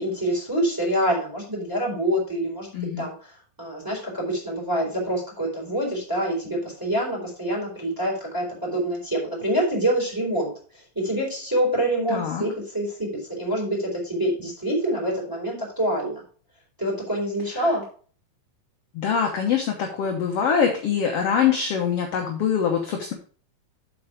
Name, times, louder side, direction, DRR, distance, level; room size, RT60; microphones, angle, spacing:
voice 1, 0.0-3.3 3.6-16.2 16.8-17.8, right 1 dB, 5° right, 0 dB, 3.7 m, -26 dB
voice 2, 2.7-3.1 12.1-12.4 17.5-17.7 18.9-23.1, left 7 dB, 65° left, 2 dB, 1.5 m, -24 dB
7.8 x 6.1 x 4.9 m, 0.42 s
omnidirectional pair, 4.0 m